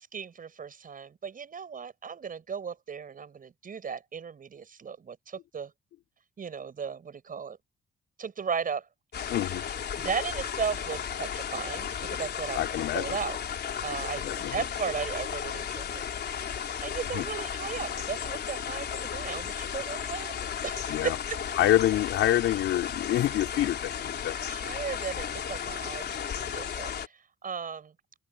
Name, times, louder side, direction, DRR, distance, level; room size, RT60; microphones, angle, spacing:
voice 1, 0.0-5.7 6.4-7.6 8.2-8.9 10.0-13.4 13.8-16.0 16.3-20.3 20.6-21.4 24.5-27.9, right 6 dB, 45° right, 5.5 m, -36 dB
sound 1, 9.1-27.1, left 8 dB, 55° left, 3.9 m, -34 dB
voice 2, 9.3-9.7 12.5-13.2 14.2-14.6 17.1-17.3 20.9-21.2 21.6-24.4, left 13 dB, 85° left, 4.0 m, -26 dB
cardioid pair, 90°, 20 cm